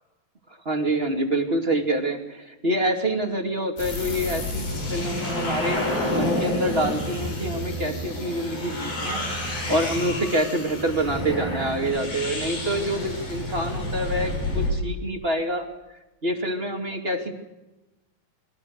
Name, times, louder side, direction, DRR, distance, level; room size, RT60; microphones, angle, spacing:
voice 1, 0.5-5.8 6.1-15.7 16.2-17.3, right 1 dB, 20° right, 4 dB, 2.3 m, -26 dB
sound 1, 3.8-14.7, left 1 dB, 85° left, 9.1 m, -29 dB
30.0 x 23.0 x 6.7 m, 1.0 s
omnidirectional pair, 4.1 m